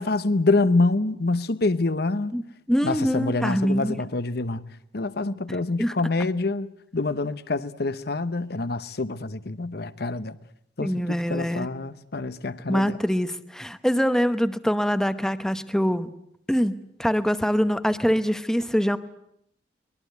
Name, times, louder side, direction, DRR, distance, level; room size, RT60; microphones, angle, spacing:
voice 1, 0.0-2.3 2.8-4.6 4.9-10.4 10.8-13.0, left 3 dB, 60° left, 1.0 m, -26 dB
voice 2, 2.7-4.0 5.8-5.9 10.8-11.7 12.7-16.1 16.5-19.0, equal, 5° left, 0.9 m, -24 dB
24.0 x 21.0 x 8.1 m
head